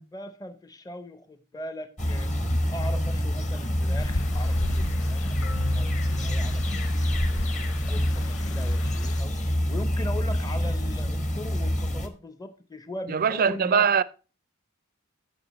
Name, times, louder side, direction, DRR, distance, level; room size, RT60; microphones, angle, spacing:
voice 1, 0.1-2.3 2.7-5.3 5.7-6.8 7.3-9.3 9.7-13.9, left 1 dB, 15° left, 0.6 m, -40 dB
sound 1, 2.0-12.1, equal, 35° left, 1.2 m, -26 dB
sound 2, 4.0-9.2, left 3 dB, 60° left, 0.5 m, -38 dB
Marimba xylophone, 5.4-9.3, left 6 dB, 80° left, 1.8 m, -43 dB
voice 2, 13.1-14.0, right 6 dB, 45° right, 0.4 m, -22 dB
16.5 x 5.9 x 3.0 m
head